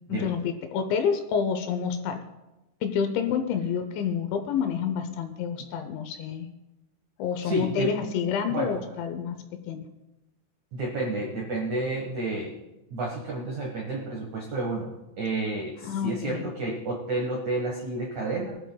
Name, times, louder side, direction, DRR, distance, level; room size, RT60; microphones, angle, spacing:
voice 1, 0.1-2.2 2.8-6.5 7.2-9.4 9.7-9.8 15.8-16.4, left 7 dB, 75° left, 7 dB, 2.8 m, -28 dB
voice 2, 7.4-7.9 8.5-8.8 10.7-12.5 12.9-18.6, right 2 dB, 75° right, -2 dB, 1.7 m, -30 dB
23.0 x 12.5 x 2.3 m, 1.0 s
omnidirectional pair, 5.9 m